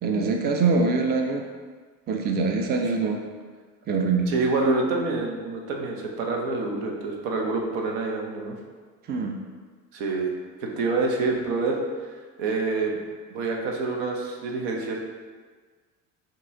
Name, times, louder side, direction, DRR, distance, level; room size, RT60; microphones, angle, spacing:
voice 1, 0.0-1.5 2.1-3.2 3.9-4.3 9.1-9.4, right 4 dB, 25° right, 3 dB, 0.4 m, -24 dB
voice 2, 4.3-8.5 9.9-10.3 10.6-11.8 12.1-13.0 13.3-15.0, right 3 dB, 75° right, 0 dB, 0.8 m, -27 dB
5.3 x 2.8 x 2.7 m, 1.5 s
hypercardioid pair, 70°, 42 cm